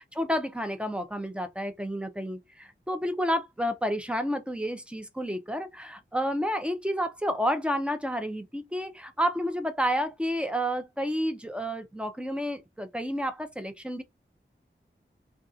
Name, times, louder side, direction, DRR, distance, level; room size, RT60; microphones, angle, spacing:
voice 1, 0.0-14.0, equal, 5° right, 0.5 m, -30 dB
2.5 x 2.4 x 2.5 m
wide cardioid pair, 45°, 21 cm